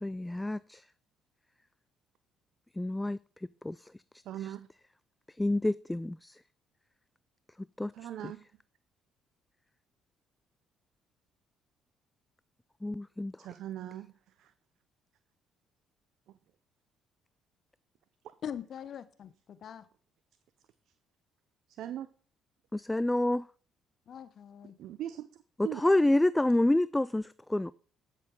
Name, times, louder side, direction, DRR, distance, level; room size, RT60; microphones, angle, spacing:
voice 1, 0.0-0.8 2.8-3.2 3.6-3.8 5.4-6.4 7.8-7.9 12.8-13.3 22.7-23.5 25.8-27.7, left 1 dB, 10° left, 18 dB, 0.3 m, -28 dB
voice 2, 4.2-4.7 7.9-8.4 13.4-14.1 14.4-14.5 16.3-16.4 18.2-18.3 21.8-22.1 24.8-25.8, right 12 dB, 70° right, 13 dB, 0.5 m, -40 dB
voice 3, 18.4-19.9 24.1-24.8, left 8 dB, 55° left, 15 dB, 0.8 m, -42 dB
12.0 x 6.6 x 3.8 m, 0.42 s
hypercardioid pair, 55°, 0 cm